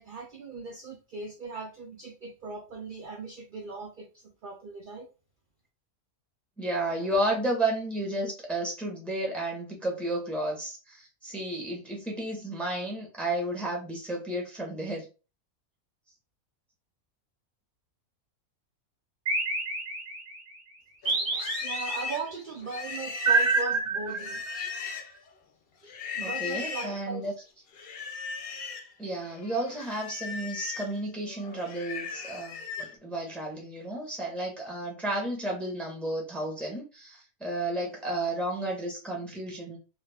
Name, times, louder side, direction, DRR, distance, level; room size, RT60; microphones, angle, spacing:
voice 1, 0.0-5.1 21.6-24.4 26.1-27.2, right 3 dB, 75° right, 0.4 m, -38 dB
voice 2, 6.6-15.1 26.2-27.3 29.0-39.8, right 1 dB, ahead, 0.6 m, -32 dB
sound 1, 19.3-20.4 21.1-22.2 23.3-24.7, right 3 dB, 40° right, 0.8 m, -28 dB
Livestock farm animals working animals, 21.0-25.3 25.9-27.0 27.7-28.9 29.3-32.9, left 5 dB, 65° left, 0.6 m, -37 dB
2.5 x 2.3 x 3.3 m
omnidirectional pair, 1.5 m